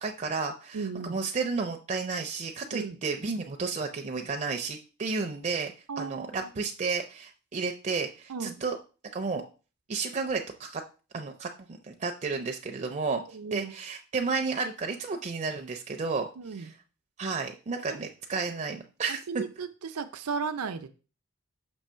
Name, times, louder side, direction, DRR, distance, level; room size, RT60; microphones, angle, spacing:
voice 1, 0.0-8.8 9.1-9.4 9.9-10.8 11.1-13.2 13.5-16.7 17.2-19.4, right 4 dB, 30° right, 3 dB, 0.5 m, -32 dB
voice 2, 0.7-1.2 2.7-3.0 5.9-6.5 8.3-8.6 13.3-13.7 16.4-16.7 17.9-18.0 19.1-20.9, right 5 dB, 90° right, 8 dB, 0.6 m, -35 dB
6.2 x 3.1 x 5.5 m, 0.34 s
head